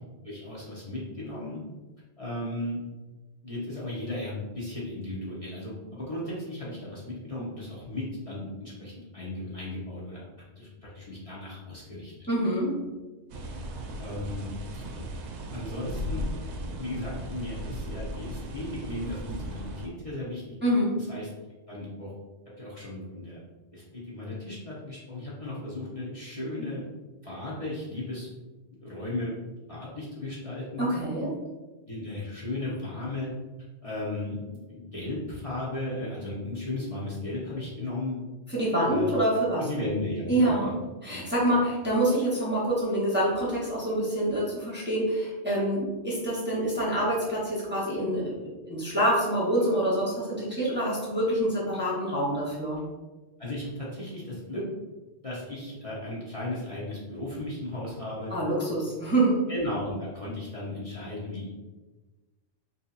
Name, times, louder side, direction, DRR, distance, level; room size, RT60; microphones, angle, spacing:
voice 1, 0.2-1.6 2.2-2.8 3.4-10.2 10.6-12.1 14.0-14.8 15.5-16.3 16.7-20.4 21.0-21.3 21.7-22.1 22.6-23.4 23.7-26.8 27.2-28.3 28.8-29.3 29.7-30.8 31.9-33.3 33.8-38.2 38.9-39.2 39.6-40.7 41.1-41.6 53.4-54.6 55.2-58.3 59.5-61.5, left 2 dB, 35° left, -8 dB, 0.9 m, -35 dB
voice 2, 12.3-12.8 20.6-21.0 30.8-31.3 38.5-39.7 40.3-40.7 41.0-52.8 58.3-59.4, right 1 dB, 10° right, -7 dB, 0.9 m, -26 dB
sound 1, 13.3-19.9, equal, 90° right, 0.9 m, -36 dB
3.3 x 2.8 x 4.0 m, 1.2 s
omnidirectional pair, 1.1 m